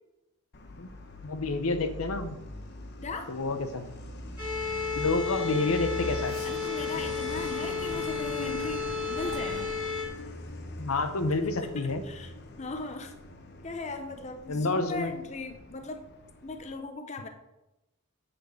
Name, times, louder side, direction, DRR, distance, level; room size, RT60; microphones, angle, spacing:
Truck, 0.5-16.8, left 1 dB, 50° left, 0.9 m, -42 dB
voice 1, 1.2-2.4 3.3-3.8 4.9-6.4 10.8-12.0 14.5-15.1, left 3 dB, 75° left, 9 dB, 0.7 m, -29 dB
voice 2, 3.0-3.3 6.4-9.7 11.3-13.1 13.6-16.1 16.4-17.3, left 3 dB, 30° left, 6 dB, 0.6 m, -38 dB
sound 1, 4.4-10.0, left 5 dB, 5° right, 2.7 m, -33 dB
8.0 x 4.3 x 6.8 m, 0.97 s
head